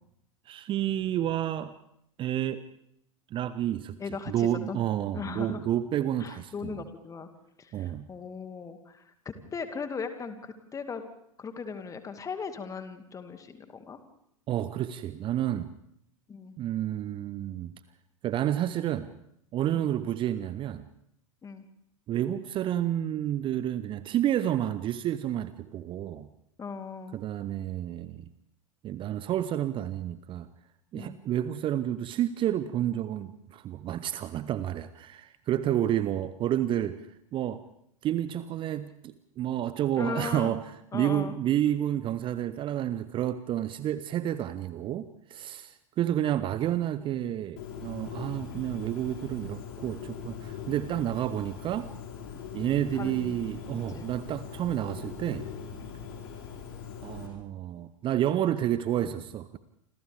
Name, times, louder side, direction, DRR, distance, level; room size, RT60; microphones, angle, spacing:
voice 1, 0.5-1.7 2.2-2.6 3.3-4.0 4.3-6.8 7.7-8.1 14.5-15.7 16.6-17.7 18.2-19.1 19.5-20.8 22.1-26.3 27.1-28.3 28.8-30.5 30.9-37.0 37.3-37.6 38.0-40.6 40.9-51.9 52.5-55.5 57.0-59.6, right 11 dB, 30° right, 14 dB, 0.8 m, -30 dB
voice 2, 4.0-4.8 5.1-5.6 6.2-7.3 7.6-11.0 11.4-14.0 16.3-16.6 19.7-19.9 21.4-21.6 26.6-27.2 30.9-31.2 40.0-40.5 40.9-41.3 52.9-53.4 53.9-54.1, left 5 dB, 20° left, 8 dB, 2.1 m, -38 dB
Bird, 47.6-57.3, left 7 dB, 50° left, 5.4 m, -41 dB
28.0 x 26.5 x 3.5 m, 0.73 s
figure-of-eight pair, 85°, 17 cm